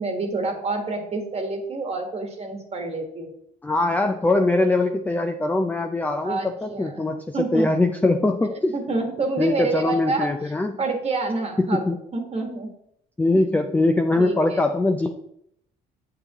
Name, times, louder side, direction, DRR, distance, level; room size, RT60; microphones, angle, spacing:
voice 1, 0.0-3.3 6.2-7.1 7.3-7.7 8.7-10.5 10.8-12.7 13.3-13.4 14.2-14.6, right 3 dB, 35° right, 3 dB, 1.4 m, -28 dB
voice 2, 3.6-8.7 9.4-10.7 11.7-12.0 12.5-12.6 13.2-15.1, left 2 dB, 10° left, 5 dB, 0.4 m, -22 dB
8.1 x 6.6 x 3.0 m, 0.73 s
cardioid pair, 110°, 17 cm